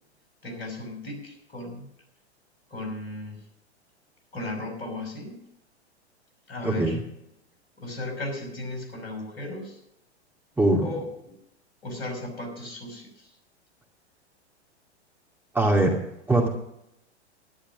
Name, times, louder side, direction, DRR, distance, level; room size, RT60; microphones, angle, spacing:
voice 1, 0.4-1.9 2.7-3.4 4.3-5.4 6.5-7.0 7.8-9.8 10.8-11.4 11.8-13.3, left 2 dB, 60° left, 3 dB, 5.7 m, -36 dB
voice 2, 6.6-7.0 10.6-10.9 15.5-16.0 16.3-16.5, right 2 dB, 5° right, 0 dB, 2.2 m, -21 dB
11.5 x 11.5 x 6.1 m, 0.82 s
figure-of-eight pair, 100°, 34 cm